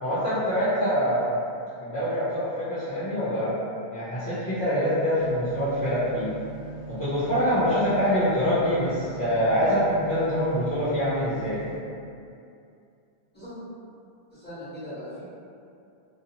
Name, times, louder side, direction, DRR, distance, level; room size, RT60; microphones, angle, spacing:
voice 1, 0.0-1.3 1.8-3.5 3.9-6.3 6.9-11.6, equal, 30° left, -15 dB, 0.4 m, -25 dB
sound 1, 5.2-11.8, right 3 dB, 50° right, 0.6 m, -40 dB
voice 2, 14.3-15.2, equal, 10° left, -14 dB, 0.9 m, -39 dB
2.5 x 2.0 x 2.8 m, 2.5 s
omnidirectional pair, 1.0 m